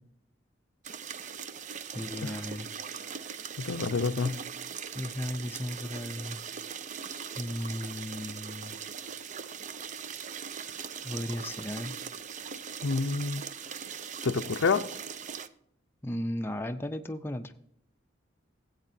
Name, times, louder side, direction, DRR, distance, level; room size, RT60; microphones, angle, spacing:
sound 1, 0.8-15.5, right 7 dB, 40° right, 0.4 m, -40 dB
voice 1, 1.9-2.7 4.9-6.4 7.4-8.8 11.0-11.9 16.0-17.5, left 1 dB, 10° left, 0.5 m, -35 dB
voice 2, 3.6-4.3 12.8-13.4 14.2-14.8, left 4 dB, 80° left, 0.6 m, -28 dB
16.0 x 8.1 x 2.6 m
head